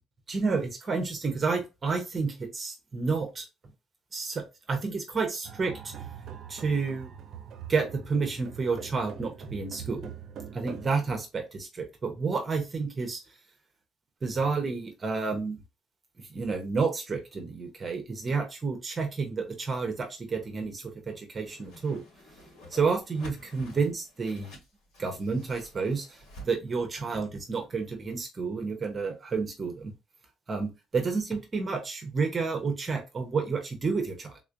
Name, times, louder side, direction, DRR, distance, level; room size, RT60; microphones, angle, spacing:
voice 1, 0.3-3.5 4.1-5.9 6.5-7.1 7.7-10.1 10.5-13.2 14.2-15.6 16.3-22.0 22.7-24.6 25.0-29.9 30.5-34.4, right 4 dB, 25° right, 5 dB, 0.8 m, -30 dB
sound 1, 5.4-10.9, right 8 dB, 50° right, 0.5 m, -43 dB
Whoosh swoosh swish, 21.5-26.5, equal, 90° left, 2.4 m, -49 dB
3.6 x 3.1 x 2.5 m, 0.25 s
cardioid pair, 155°, 0 cm